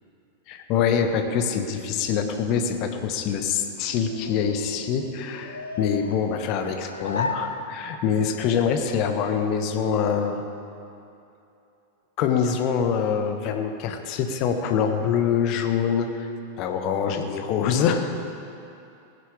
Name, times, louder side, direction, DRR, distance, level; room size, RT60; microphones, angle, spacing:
voice 1, 0.5-10.4 12.2-16.3 16.6-18.1, left 7 dB, 40° left, 6 dB, 1.4 m, -25 dB
sound 1, 3.3-8.2, left 3 dB, 75° left, 1.1 m, -35 dB
19.5 x 9.8 x 4.9 m, 2.7 s
figure-of-eight pair, 90°, 0 cm